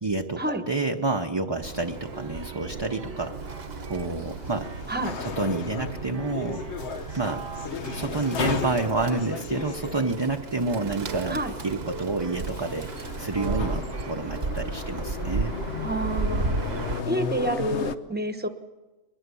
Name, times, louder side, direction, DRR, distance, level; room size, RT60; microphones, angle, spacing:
voice 1, 0.0-3.3 3.8-4.7 5.2-6.7 7.2-7.4 7.9-11.4 11.6-15.6, right 3 dB, 25° right, 4 dB, 0.7 m, -29 dB
Bird, 1.6-17.0, right 4 dB, 65° right, 1.3 m, -35 dB
sound 1, 1.7-18.0, left 6 dB, 75° left, 1.2 m, -35 dB
sound 2, 2.0-14.1, right 6 dB, 80° right, 1.5 m, -43 dB
voice 2, 15.8-16.5 17.1-18.5, right 1 dB, 10° right, 8 dB, 1.1 m, -28 dB
22.5 x 20.5 x 6.9 m, 1.2 s
omnidirectional pair, 1.2 m